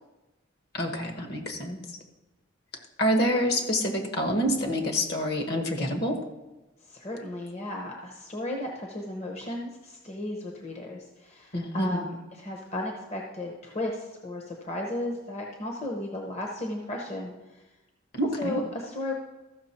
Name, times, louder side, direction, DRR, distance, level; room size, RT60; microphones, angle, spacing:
voice 1, 0.7-1.8 3.0-6.2 11.5-12.0 18.1-18.6, equal, 50° left, 3 dB, 1.3 m, -27 dB
voice 2, 6.9-17.6 18.4-19.1, left 1 dB, 35° left, 0 dB, 0.9 m, -35 dB
14.0 x 6.1 x 4.3 m, 1.1 s
head